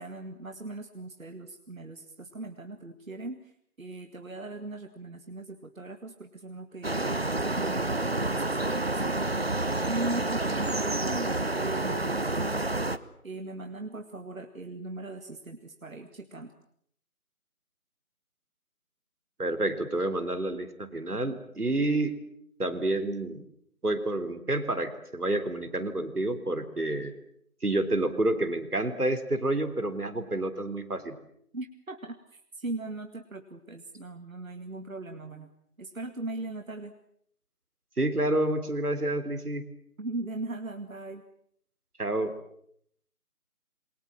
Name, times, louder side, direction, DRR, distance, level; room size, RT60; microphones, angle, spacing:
voice 1, 0.0-9.2 9.9-16.5 31.5-35.5 35.8-36.9 40.0-41.2, right 2 dB, 65° right, 7 dB, 2.2 m, -39 dB
sound 1, 6.8-13.0, right 2 dB, 45° right, 1.0 m, -29 dB
voice 2, 19.4-22.1 22.6-23.4 23.8-27.1 27.6-31.2 38.0-39.6 42.0-42.3, right 2 dB, 85° right, 9 dB, 3.8 m, -29 dB
27.5 x 24.0 x 7.7 m, 0.69 s
figure-of-eight pair, 170°, 44 cm